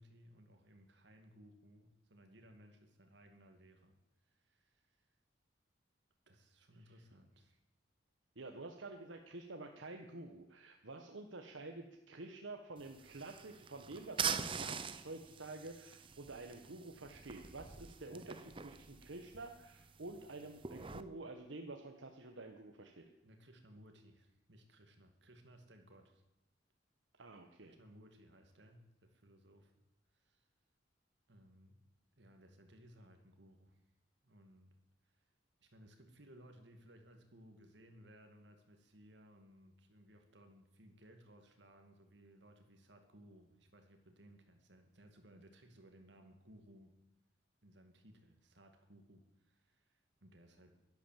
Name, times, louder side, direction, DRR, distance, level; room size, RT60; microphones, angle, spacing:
voice 1, 0.0-4.0 4.2-5.1 6.3-7.6 23.2-26.2 27.6-29.7 30.1-30.5 31.3-31.8 32.2-33.8 34.2-34.7 35.0-35.2 35.6-47.0 47.6-50.8, equal, 65° right, 5 dB, 2.4 m, -61 dB
voice 2, 8.4-23.1 27.2-27.7, right 2 dB, 85° right, 4 dB, 1.3 m, -49 dB
sound 1, 12.8-21.0, right 6 dB, 25° right, 0.6 m, -44 dB
12.0 x 11.0 x 7.5 m, 0.94 s
head